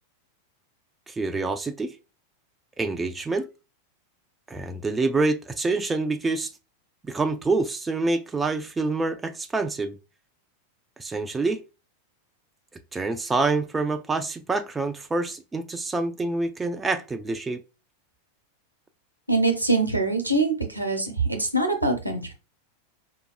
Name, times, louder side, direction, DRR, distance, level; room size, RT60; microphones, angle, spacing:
voice 1, 1.1-2.0 2.8-3.5 4.5-6.5 7.0-10.0 11.0-11.6 12.9-17.6, right 3 dB, 15° right, 0.3 m, -26 dB
voice 2, 19.3-22.3, right 2 dB, 90° right, 0.8 m, -24 dB
4.5 x 2.3 x 2.3 m
figure-of-eight pair, 90°, 0 cm